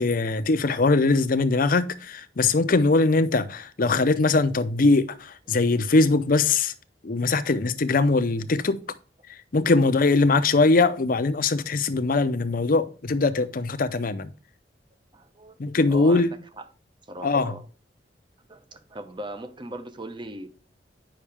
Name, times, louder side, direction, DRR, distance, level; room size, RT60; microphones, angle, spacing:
voice 1, 0.0-6.7 7.0-8.8 9.3-14.3 15.6-16.3 17.2-17.6, left 3 dB, 50° left, 0.6 m, -21 dB
voice 2, 15.1-16.7 17.1-17.7 18.5-20.5, right 1 dB, 25° right, 0.8 m, -39 dB
8.5 x 5.7 x 3.5 m
head